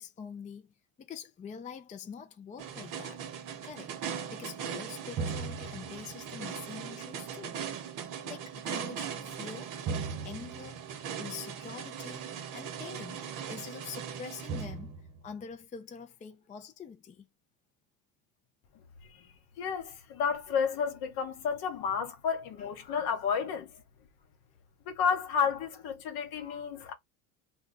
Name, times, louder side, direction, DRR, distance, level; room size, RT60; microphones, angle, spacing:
voice 1, 0.0-3.2 3.6-7.6 8.2-9.8 10.2-10.8 11.2-17.3, left 6 dB, 20° left, 0.4 m, -45 dB
sound 1, 2.6-15.3, right 7 dB, 50° right, 0.8 m, -38 dB
voice 2, 19.6-23.7 24.9-26.9, left 6 dB, 55° left, 1.0 m, -31 dB
2.2 x 2.2 x 3.7 m
hypercardioid pair, 80°, 43 cm